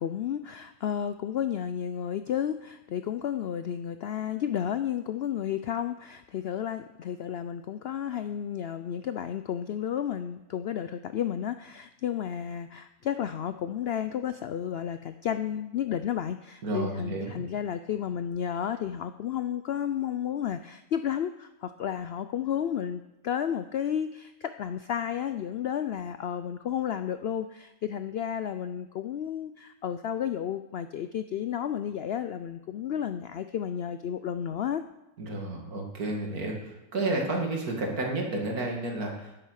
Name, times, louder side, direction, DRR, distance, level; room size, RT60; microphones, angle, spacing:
voice 1, 0.0-34.8, left 9 dB, 75° left, 10 dB, 0.5 m, -32 dB
voice 2, 16.6-17.4 35.2-36.6 36.9-39.3, right 2 dB, 75° right, 1 dB, 2.6 m, -31 dB
10.5 x 9.1 x 6.4 m, 0.94 s
omnidirectional pair, 1.6 m